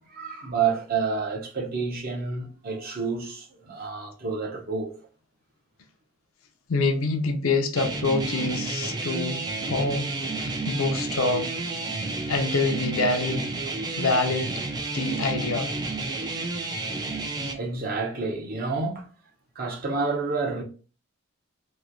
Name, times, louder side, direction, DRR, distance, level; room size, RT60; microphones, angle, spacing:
voice 1, 0.1-5.0 16.9-17.0 17.5-19.1 19.5-20.6, right 4 dB, 40° right, 0.7 m, -29 dB
voice 2, 6.7-9.4 9.7-11.5 12.3-13.5 14.0-14.6 14.9-15.7, left 3 dB, 75° left, 0.5 m, -26 dB
sound 1, 7.8-17.5, right 3 dB, 20° right, 0.3 m, -31 dB
3.1 x 2.7 x 2.5 m
head